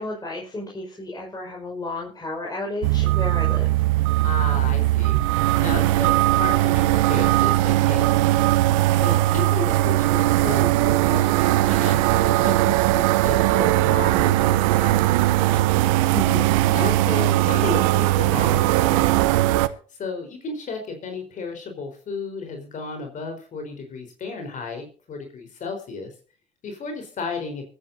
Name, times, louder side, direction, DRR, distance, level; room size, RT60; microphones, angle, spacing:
voice 1, 0.0-3.7 16.1-16.5, left 2 dB, 25° left, -2 dB, 5.5 m, -32 dB
sound 1, 2.8-19.7, right 16 dB, 80° right, 0.8 m, -19 dB
voice 2, 4.2-8.1 8.9-15.6 16.7-19.3 20.0-26.1 26.6-27.6, left 4 dB, 50° left, 4 dB, 4.4 m, -33 dB
24.0 x 10.0 x 2.8 m, 0.40 s
hypercardioid pair, 65°, 17 cm